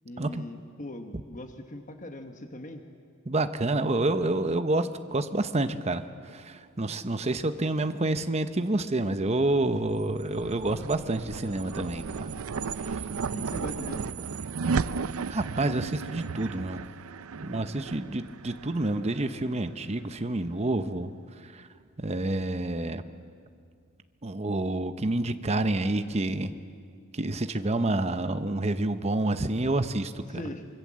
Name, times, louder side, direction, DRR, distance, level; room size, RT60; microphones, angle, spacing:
voice 1, 0.0-2.8 13.3-14.1 30.3-30.7, left 1 dB, 35° left, 5 dB, 1.2 m, -40 dB
voice 2, 3.3-12.3 12.8-13.0 15.3-16.8 17.4-21.1 21.5-21.6 22.0-23.0 24.2-26.5 27.1-30.2, right 2 dB, 30° right, 9 dB, 0.8 m, -28 dB
sound 1, 9.7-20.2, right 5 dB, 80° right, 0.5 m, -35 dB
25.0 x 23.0 x 7.5 m, 2.2 s
head